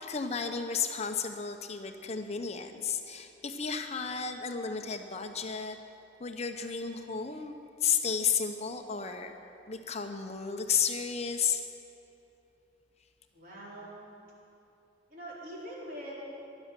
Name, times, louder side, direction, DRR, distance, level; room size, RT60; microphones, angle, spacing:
voice 1, 0.0-5.8 6.2-7.5 7.8-9.3 9.7-11.6, left 6 dB, 35° left, 6 dB, 0.8 m, -32 dB
voice 2, 13.3-14.1 15.1-16.1, right 1 dB, 50° right, -5 dB, 4.3 m, -43 dB
15.5 x 11.5 x 7.5 m, 2.9 s
head